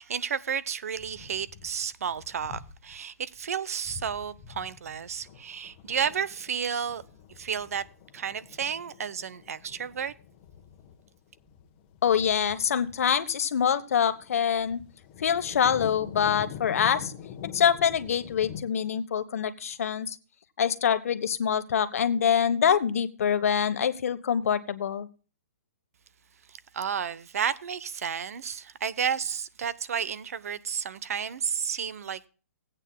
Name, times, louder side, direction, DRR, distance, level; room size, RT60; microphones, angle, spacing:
voice 1, 0.0-7.0 7.4-7.8 8.1-10.1 26.5-32.3, right 7 dB, 70° right, 0.8 m, -32 dB
sound 1, 0.9-3.0 3.3-3.5 3.8-18.6, left 8 dB, 30° left, 1.2 m, -45 dB
voice 2, 12.0-14.8 15.2-17.1 17.5-20.2 20.6-25.1, left 8 dB, 65° left, 1.1 m, -25 dB
17.0 x 8.9 x 2.2 m
hypercardioid pair, 150°, 8 cm